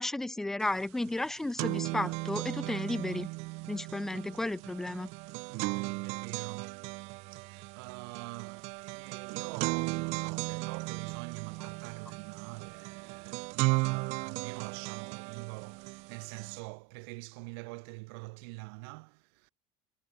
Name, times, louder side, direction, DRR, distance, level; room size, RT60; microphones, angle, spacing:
voice 1, 0.0-3.3 3.7-5.1, left 2 dB, 5° left, 0.4 m, -33 dB
sound 1, 0.7-0.8 1.1-16.6, right 27 dB, 55° right, 3.5 m, -36 dB
voice 2, 5.5-6.8 7.3-19.5, right 31 dB, 75° right, 4.4 m, -45 dB
cardioid pair, 180°, 13 cm